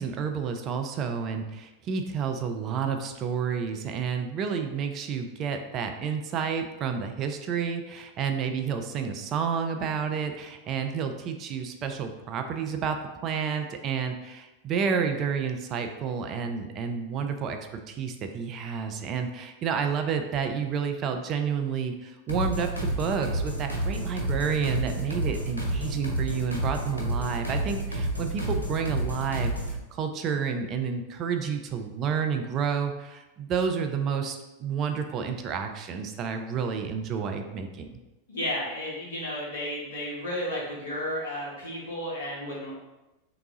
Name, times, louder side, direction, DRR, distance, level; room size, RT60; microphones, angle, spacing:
voice 1, 0.0-13.0 13.2-17.6 17.9-38.0, right 6 dB, 35° right, 6 dB, 0.4 m, -30 dB
sound 1, 22.3-29.8, right 1 dB, 90° right, 0.9 m, -30 dB
voice 2, 38.3-42.7, left 1 dB, 65° left, -4 dB, 1.3 m, -33 dB
3.4 x 2.9 x 3.7 m, 1.0 s
figure-of-eight pair, 90°, 0 cm